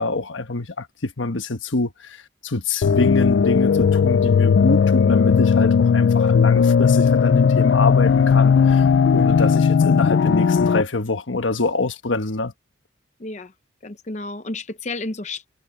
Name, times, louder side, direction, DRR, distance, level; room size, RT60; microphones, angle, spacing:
voice 1, 0.0-8.8 9.1-12.5, left 2 dB, 85° left, 1.3 m, -25 dB
sound 1, 2.8-10.8, left 6 dB, 60° left, 0.3 m, -16 dB
voice 2, 13.2-13.5 13.8-15.5, left 2 dB, 40° left, 0.7 m, -31 dB
head